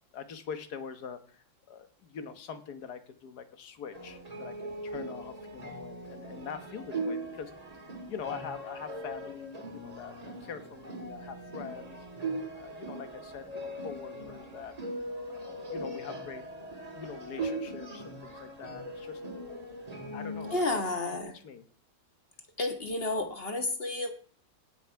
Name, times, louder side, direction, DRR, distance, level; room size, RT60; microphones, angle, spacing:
voice 1, 0.1-7.5 7.9-12.1 12.6-14.7 15.4-16.5 16.9-19.2 20.1-21.0 21.3-21.6, left 6 dB, 55° left, 10 dB, 1.6 m, -44 dB
sound 1, 3.9-20.8, right 1 dB, 20° right, 1.7 m, -40 dB
voice 2, 20.5-21.3 22.6-24.1, left 2 dB, 30° left, 5 dB, 1.7 m, -31 dB
17.0 x 6.3 x 4.7 m, 0.42 s
omnidirectional pair, 2.2 m